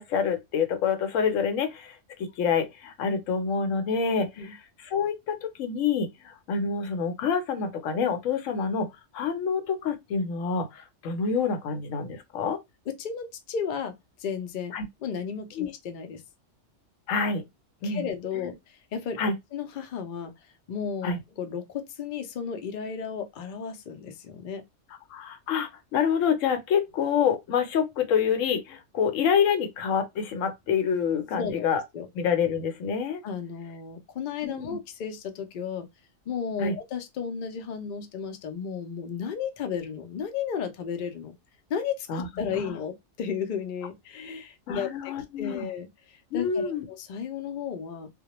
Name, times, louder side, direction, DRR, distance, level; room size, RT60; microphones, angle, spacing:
voice 1, 0.0-8.9 9.1-12.6 14.7-14.8 15.6-15.7 17.1-17.4 17.8-18.1 18.3-18.5 19.2-19.3 21.0-21.2 25.1-31.8 32.1-33.2 34.4-34.8 36.6-36.7 42.1-42.7 44.7-45.7 46.3-46.9, left 6 dB, 80° left, 1.0 m, -27 dB
voice 2, 12.9-13.9 14.2-14.7 15.0-16.2 17.8-19.2 19.5-20.3 20.7-24.6 31.4-31.6 31.9-32.1 33.2-35.9 36.3-41.4 41.7-48.1, left 7 dB, 60° left, 0.5 m, -34 dB
2.2 x 2.1 x 2.9 m
omnidirectional pair, 1.3 m